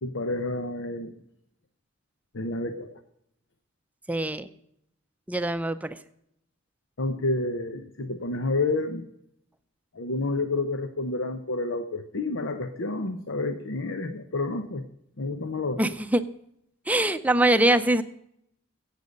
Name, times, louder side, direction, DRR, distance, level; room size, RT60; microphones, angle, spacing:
voice 1, 0.0-1.1 2.3-3.0 7.0-9.1 9.9-14.8 15.2-15.8, left 2 dB, 85° left, 8 dB, 0.9 m, -29 dB
voice 2, 4.1-4.5 5.3-6.0 15.8-16.2 16.9-18.0, right 1 dB, 10° right, 10 dB, 0.6 m, -23 dB
14.5 x 8.4 x 5.3 m, 0.74 s
head